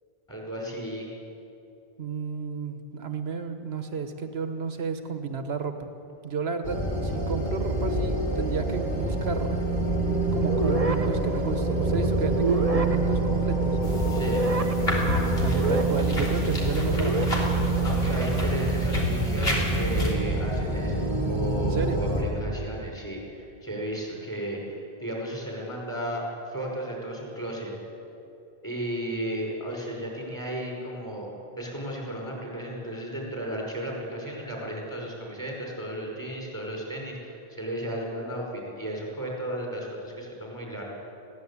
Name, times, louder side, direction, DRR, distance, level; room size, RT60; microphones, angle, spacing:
voice 1, 0.3-1.1 14.1-14.4 17.8-26.2 26.5-27.7 28.6-31.3 31.6-40.8, right 1 dB, 20° left, -2 dB, 5.4 m, -34 dB
voice 2, 2.0-5.9 6.2-9.6 10.3-13.8 15.4-17.2 21.6-22.0, right 5 dB, 85° right, 8 dB, 1.5 m, -32 dB
sound 1, 6.6-22.2, right 3 dB, 60° left, 4.3 m, -27 dB
sound 2, 10.5-18.5, right 1 dB, 35° right, 1.0 m, -30 dB
sound 3, 13.8-20.1, left 2 dB, 75° left, 3.7 m, -29 dB
21.0 x 16.0 x 8.5 m, 2.8 s
omnidirectional pair, 1.0 m